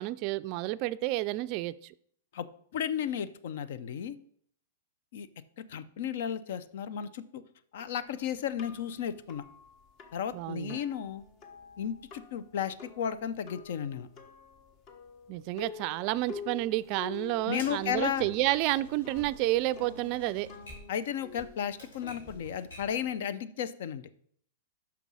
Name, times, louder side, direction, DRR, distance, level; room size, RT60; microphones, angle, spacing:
voice 1, 0.0-1.9 10.3-10.8 15.3-20.5, right 17 dB, 45° right, 15 dB, 0.3 m, -30 dB
voice 2, 2.7-4.2 5.1-5.3 5.7-7.4 7.7-9.4 10.1-11.2 11.8-14.1 17.5-18.2 20.9-24.0, left 9 dB, 65° left, 15 dB, 0.5 m, -34 dB
sound 1, 7.8-23.1, left 5 dB, 35° left, 1.0 m, -49 dB
sound 2, 15.9-19.7 20.0-20.1 20.7-20.8 21.4-21.6 22.2-22.4 22.8-22.9, left 3 dB, 20° left, 1.8 m, -55 dB
Typewriter, 17.6-23.0, left 2 dB, 85° left, 2.9 m, -51 dB
5.8 x 5.2 x 6.2 m, 0.63 s
hypercardioid pair, 120°, 0 cm